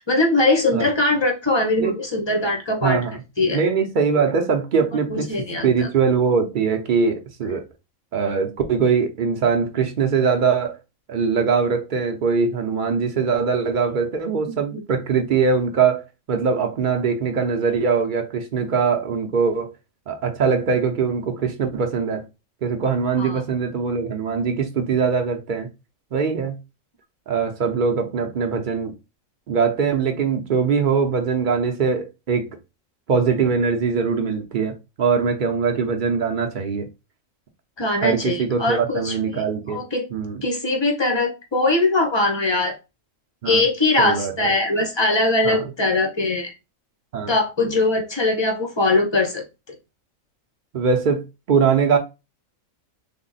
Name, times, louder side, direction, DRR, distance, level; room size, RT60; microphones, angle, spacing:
voice 1, 0.1-3.0 3.4-3.6 5.1-5.9 14.4-14.8 23.2-23.4 37.8-40.0 40.4-42.7 43.4-46.5 47.3-49.7, left 2 dB, 35° left, 0.4 m, -21 dB
voice 2, 2.8-3.1 3.5-5.3 5.6-7.6 8.1-10.8 11.1-19.7 20.1-22.2 22.6-25.7 26.1-26.6 27.3-28.9 29.5-32.5 33.1-36.9 38.0-39.8 40.1-40.4 43.4-43.6 44.0-44.5 45.4-45.7 47.1-47.3 50.7-52.0, right 5 dB, 65° right, 0.5 m, -22 dB
3.4 x 2.0 x 3.9 m
omnidirectional pair, 1.4 m